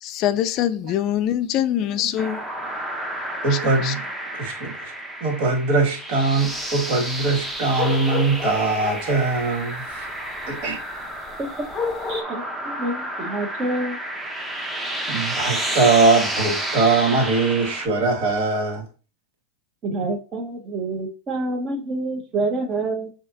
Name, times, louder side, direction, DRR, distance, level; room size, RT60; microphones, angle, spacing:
voice 1, 0.0-2.4 3.5-3.9, left 11 dB, 40° left, 0.4 m, -24 dB
sound 1, 2.2-17.9, right 1 dB, 10° right, 0.8 m, -31 dB
voice 2, 3.4-4.0 4.3-4.9 5.2-10.1 10.5-10.8 15.1-18.8, right 3 dB, 60° right, 1.9 m, -21 dB
sound 2, 6.4-12.2, left 4 dB, 25° left, 0.8 m, -33 dB
voice 3, 12.1-14.0 19.8-23.1, right 2 dB, 30° right, 1.2 m, -27 dB
6.5 x 2.8 x 2.7 m
supercardioid pair, 130°, 0 cm